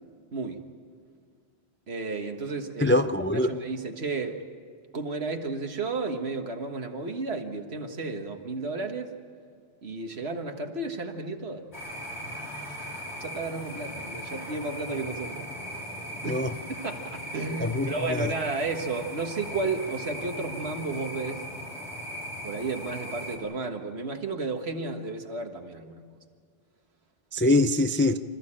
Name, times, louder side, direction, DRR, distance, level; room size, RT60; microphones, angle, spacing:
voice 1, 0.3-0.7 1.9-3.0 3.3-4.4 4.9-9.1 9.8-11.7 13.2-15.4 15.8-15.9 16.2-21.5 22.4-26.0, right 3 dB, 75° right, 1.8 m, -33 dB
voice 2, 2.8-3.5 16.2-16.5 17.6-18.3 27.3-28.2, left 2 dB, 20° left, 0.3 m, -23 dB
sound 1, 11.7-23.4, equal, 90° left, 3.6 m, -38 dB
26.0 x 14.5 x 8.8 m
omnidirectional pair, 1.1 m